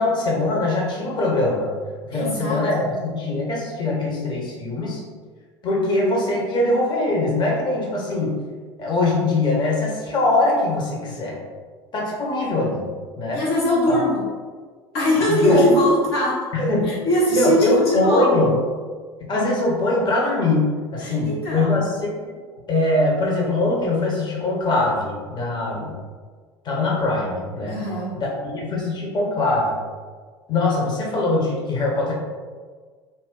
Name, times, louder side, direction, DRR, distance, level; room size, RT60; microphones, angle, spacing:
voice 1, 0.0-1.7 2.1-5.0 5.6-8.4 8.8-11.4 11.9-12.9 13.2-13.4 13.9-14.0 15.3-15.6 16.5-16.9 17.3-18.6 19.3-22.3 22.7-25.9 26.6-27.8 28.1-29.8 30.5-32.1, left 2 dB, 35° left, -2 dB, 0.8 m, -22 dB
voice 2, 2.1-2.9 13.3-14.2 14.9-16.4 16.8-18.4 21.0-21.8 27.7-28.1, equal, 70° left, -6 dB, 1.1 m, -21 dB
2.6 x 2.2 x 3.6 m, 1.5 s
figure-of-eight pair, 70°, 14 cm